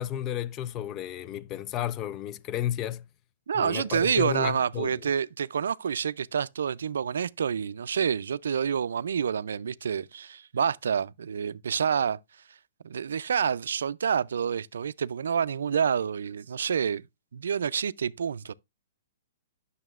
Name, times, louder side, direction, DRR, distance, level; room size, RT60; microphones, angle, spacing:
voice 1, 0.0-3.1 3.5-5.0, left 11 dB, 25° left, 0.3 m, -32 dB
voice 2, 3.5-12.2 12.8-17.0 17.3-18.5, right 7 dB, 85° right, 0.3 m, -28 dB
9.0 x 6.5 x 2.4 m
hypercardioid pair, 155°, 0 cm